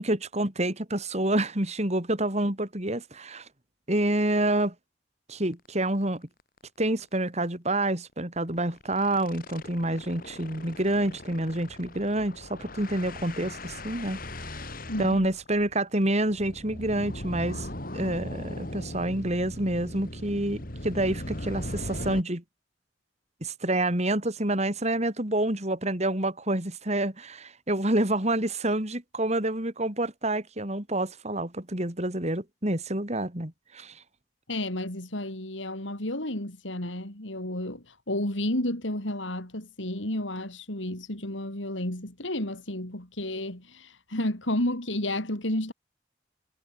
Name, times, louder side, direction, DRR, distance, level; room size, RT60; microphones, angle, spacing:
voice 1, 0.0-3.5 3.9-4.7 5.3-6.2 6.8-14.2 15.0-17.7 17.9-22.4 23.4-34.0, right 1 dB, 35° right, 3.9 m, -28 dB
sound 1, 5.5-5.7 6.0-6.1 6.4-6.6 6.9-7.0 8.4-22.2, left 1 dB, 50° left, 6.2 m, -39 dB
voice 2, 14.9-15.3 34.5-45.7, left 1 dB, 85° left, 5.5 m, -31 dB
head